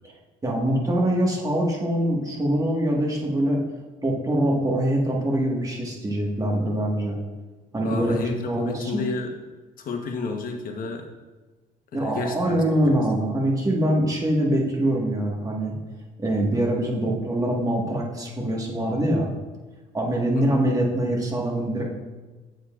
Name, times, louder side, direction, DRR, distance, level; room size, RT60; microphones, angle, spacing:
voice 1, 0.4-3.6 4.0-7.2 7.7-8.2 8.4-9.0 11.9-15.7 16.2-19.3 19.9-21.9, right 1 dB, 20° right, -2 dB, 1.6 m, -24 dB
voice 2, 7.8-9.4 9.8-11.0 11.9-13.0 16.5-16.6 20.3-20.6, left 4 dB, 55° left, 3 dB, 1.1 m, -31 dB
8.0 x 7.2 x 2.5 m, 1.3 s
cardioid pair, 110°, 17 cm